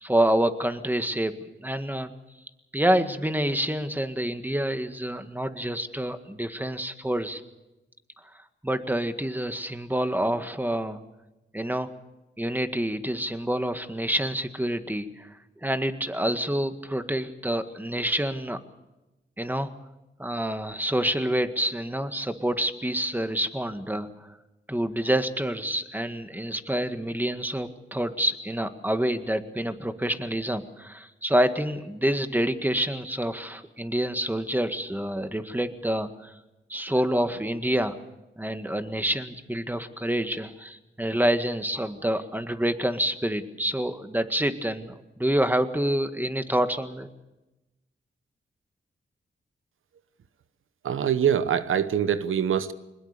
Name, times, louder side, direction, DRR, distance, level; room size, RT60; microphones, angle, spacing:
voice 1, 0.0-2.1 2.7-7.4 8.6-11.0 11.5-11.9 12.4-15.3 15.6-18.6 19.4-19.7 20.2-24.3 24.7-36.3 36.7-38.0 38.4-47.1, right 1 dB, 10° right, 9 dB, 1.8 m, -27 dB
voice 2, 50.8-52.7, right 8 dB, 85° right, 13 dB, 1.0 m, -24 dB
22.0 x 20.5 x 6.9 m, 1.0 s
cardioid pair, 55°, 20 cm